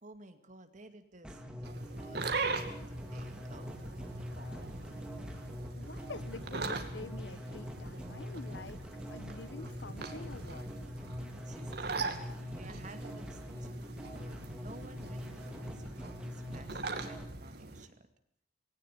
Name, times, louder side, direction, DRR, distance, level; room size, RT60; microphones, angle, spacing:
voice 1, 0.0-5.1 11.2-17.9, right 2 dB, 45° right, 7 dB, 2.2 m, -55 dB
sound 1, 1.2-17.2, equal, 5° right, 2.6 m, -44 dB
sound 2, 1.6-17.9, right 3 dB, 65° right, 2.4 m, -42 dB
voice 2, 4.3-4.7 5.8-8.8 9.1-10.7, left 3 dB, 85° left, 14 dB, 1.2 m, -47 dB
19.0 x 18.0 x 9.3 m, 0.67 s
head